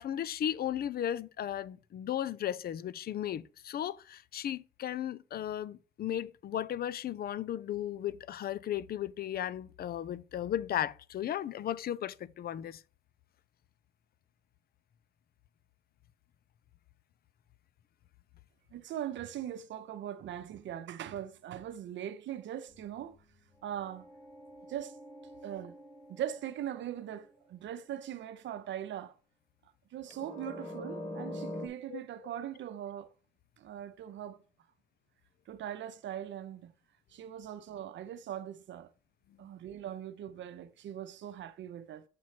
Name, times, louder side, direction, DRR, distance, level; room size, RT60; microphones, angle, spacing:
voice 1, 0.0-12.8 31.9-32.0, left 10 dB, 50° left, 0.4 m, -35 dB
voice 2, 18.7-23.2 23.6-24.1 24.7-25.0 25.4-25.8 26.1-29.1 29.9-33.1 33.6-34.4 35.5-36.7 37.1-38.9 39.4-42.0, right 10 dB, 70° right, 0.7 m, -40 dB
sound 1, 22.7-27.6 30.1-31.7, left 1 dB, 25° left, 1.6 m, -45 dB
7.3 x 3.1 x 5.8 m
cardioid pair, 90°, 20 cm